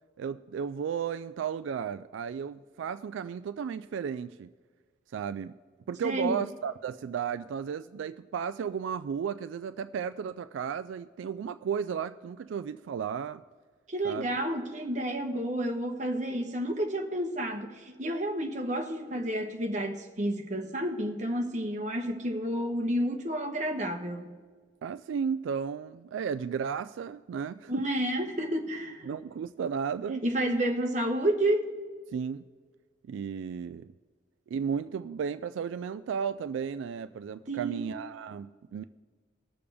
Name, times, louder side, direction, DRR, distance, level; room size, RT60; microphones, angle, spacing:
voice 1, 0.2-4.5 5.1-5.5 5.9-13.4 14.0-14.3 24.8-27.9 29.1-30.2 32.1-32.4 33.1-33.9 34.5-38.8, right 7 dB, 80° right, 12 dB, 0.3 m, -34 dB
voice 2, 6.0-6.4 13.9-24.3 27.7-29.1 30.2-31.6 37.5-37.9, right 1 dB, 40° right, 3 dB, 1.1 m, -30 dB
20.0 x 6.8 x 3.5 m, 1.5 s
head